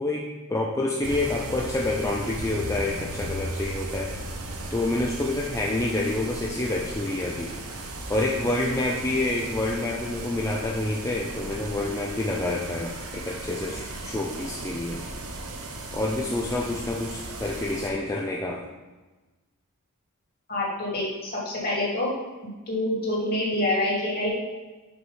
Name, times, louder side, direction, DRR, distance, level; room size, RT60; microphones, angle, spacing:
voice 1, 0.0-4.1 4.7-7.5 8.1-15.0 15.9-18.6, left 2 dB, 15° left, -1 dB, 0.5 m, -28 dB
sound 1, 1.0-17.9, right 2 dB, 65° right, 0.9 m, -36 dB
voice 2, 20.5-22.1 22.7-24.3, left 1 dB, 45° left, -5 dB, 2.5 m, -26 dB
6.2 x 4.7 x 5.6 m, 1.2 s
head